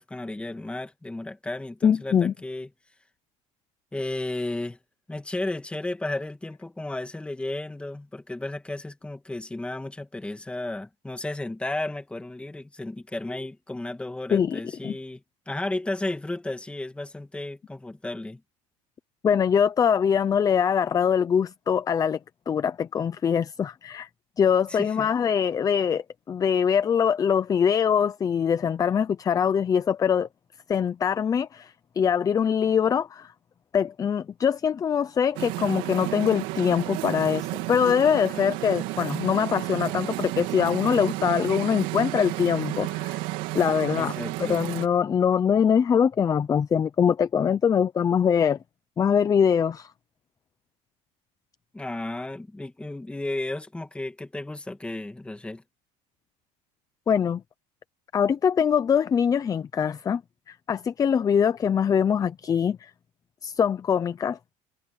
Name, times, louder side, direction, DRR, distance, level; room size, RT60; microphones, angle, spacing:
voice 1, 0.0-2.7 3.9-4.8 5.1-18.4 24.7-25.1 37.8-38.0 44.0-44.6 51.7-55.6, left 2 dB, 5° left, 2.3 m, -33 dB
voice 2, 1.8-2.3 14.3-15.0 19.2-22.2 22.5-24.1 24.4-30.3 30.7-33.3 33.7-43.2 43.5-44.1 44.4-48.6 49.0-49.9 57.1-57.4 58.1-60.2 60.5-62.9 63.4-64.4, left 7 dB, 25° left, 0.7 m, -23 dB
sound 1, 35.4-44.9, right 20 dB, 75° right, 2.8 m, -32 dB
cardioid pair, 135°, 15 cm